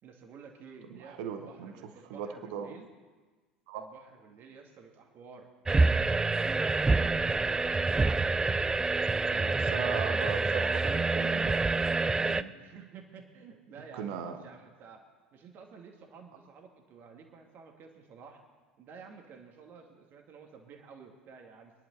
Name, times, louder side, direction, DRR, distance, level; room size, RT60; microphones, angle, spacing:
voice 1, 0.0-2.9 3.7-5.5 12.6-15.0 15.3-18.4 18.8-21.7, right 5 dB, 45° right, 3 dB, 2.2 m, -51 dB
voice 2, 0.9-2.8 3.7-3.9 9.2-11.6 11.8-12.5 13.9-14.4, right 7 dB, 60° right, 7 dB, 1.3 m, -39 dB
sound 1, 5.7-12.4, right 3 dB, 15° right, 0.4 m, -27 dB
23.5 x 11.0 x 4.1 m, 1.4 s
figure-of-eight pair, 70°, 5 cm